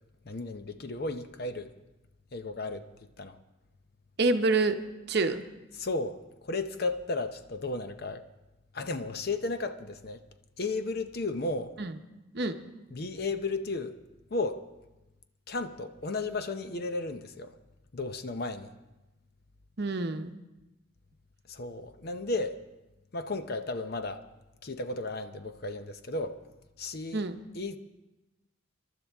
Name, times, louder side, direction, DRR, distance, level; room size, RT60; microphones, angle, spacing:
voice 1, 0.2-1.7 2.3-2.9 3.2-3.4 5.8-6.2 6.4-8.3 8.7-10.2 10.6-11.7 12.9-14.0 14.3-14.6 15.5-17.5 17.9-18.7 21.5-22.6 23.1-24.2 24.6-26.4 26.8-27.2 27.5-27.8, left 3 dB, 50° left, 0.7 m, -34 dB
voice 2, 4.2-4.8 5.1-5.4 11.8-11.9 12.3-12.6 19.8-20.3 27.1-27.4, right 3 dB, 55° right, 0.8 m, -27 dB
27.0 x 12.0 x 3.5 m
head